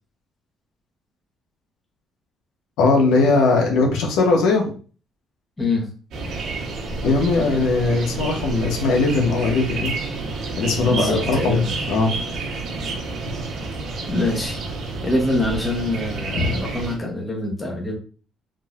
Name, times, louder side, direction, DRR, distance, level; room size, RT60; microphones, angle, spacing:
voice 1, 2.8-4.7 7.0-10.0 10.6-12.1 16.3-16.5, left 3 dB, 85° left, 1 dB, 0.9 m, -19 dB
voice 2, 5.6-5.9 10.9-11.7 14.1-14.6 15.0-18.0, left 2 dB, 15° left, -1 dB, 1.0 m, -24 dB
sound 1, 6.1-17.0, right 3 dB, 75° right, 1.2 m, -29 dB
3.8 x 2.7 x 2.4 m, 0.38 s
cardioid pair, 125°, 0 cm